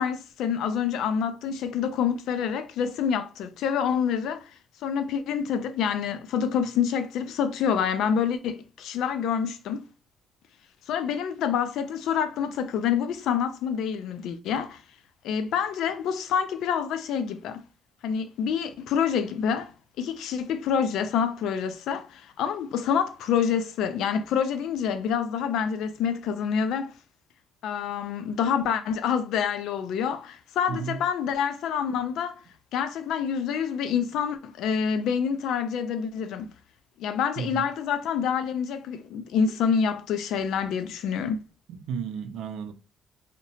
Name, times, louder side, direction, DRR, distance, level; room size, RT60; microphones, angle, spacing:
voice 1, 0.0-4.5 4.8-9.9 10.9-14.8 15.2-17.6 18.0-19.7 20.0-26.9 27.6-32.4 32.7-36.5 37.0-41.4, left 7 dB, 85° left, 0.3 m, -27 dB
voice 2, 41.7-42.7, right 7 dB, 90° right, 0.3 m, -33 dB
2.8 x 2.1 x 2.6 m
cardioid pair, 140°, 0 cm